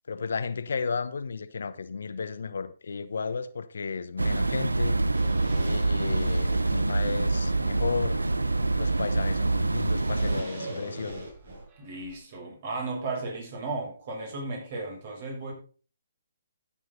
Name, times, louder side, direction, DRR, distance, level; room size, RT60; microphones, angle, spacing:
voice 1, 0.1-5.0 5.7-8.2 8.7-11.3, left 5 dB, 70° left, 1.1 m, -33 dB
sound 1, 4.2-10.4, right 2 dB, 90° right, 0.6 m, -26 dB
sound 2, 5.1-11.6, right 1 dB, 70° right, 7.1 m, -41 dB
sound 3, 10.6-12.2, right 4 dB, 25° right, 6.3 m, -49 dB
voice 2, 11.8-15.5, right 3 dB, 45° right, 7.6 m, -35 dB
14.0 x 9.2 x 4.1 m
figure-of-eight pair, 135°, 0 cm